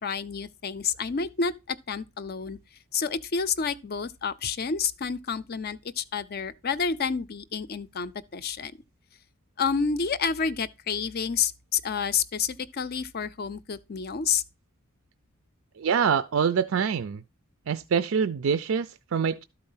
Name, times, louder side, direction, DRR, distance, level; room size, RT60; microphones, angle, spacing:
voice 1, 0.0-2.6 2.9-8.7 9.6-14.4, left 6 dB, 45° left, 0.5 m, -29 dB
voice 2, 15.8-17.2 17.7-19.4, right 6 dB, 65° right, 0.4 m, -25 dB
12.5 x 4.4 x 5.6 m
head